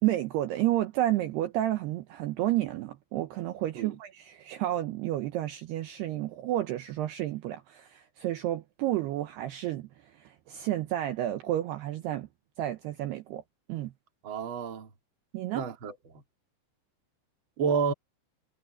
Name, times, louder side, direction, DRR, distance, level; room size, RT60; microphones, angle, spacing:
voice 1, 0.0-12.3 12.6-13.4 13.7-13.9 15.3-15.6, right 14 dB, 85° right, 2.3 m, -31 dB
voice 2, 14.2-14.9 15.5-16.2 17.6-17.9, right 6 dB, 50° right, 1.5 m, -30 dB
omnidirectional pair, 5.9 m